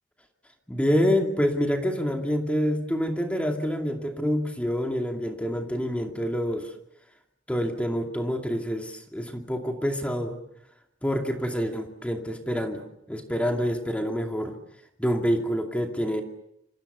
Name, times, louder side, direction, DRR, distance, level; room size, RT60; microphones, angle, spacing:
voice 1, 0.7-6.7 7.5-10.4 11.0-14.6 15.0-16.2, equal, 5° left, 3 dB, 2.5 m, -27 dB
27.5 x 27.0 x 6.8 m, 0.81 s
head